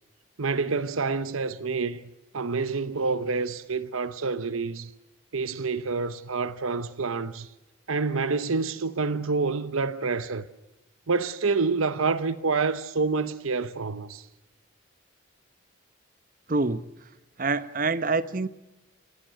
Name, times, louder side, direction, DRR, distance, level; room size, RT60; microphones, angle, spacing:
voice 1, 0.4-2.0 2.3-4.9 5.3-7.5 7.9-10.4 11.1-14.2, right 4 dB, 85° right, 0.9 m, -27 dB
voice 2, 16.5-16.9 17.4-18.5, right 3 dB, 40° right, 0.9 m, -26 dB
29.5 x 17.0 x 7.6 m
head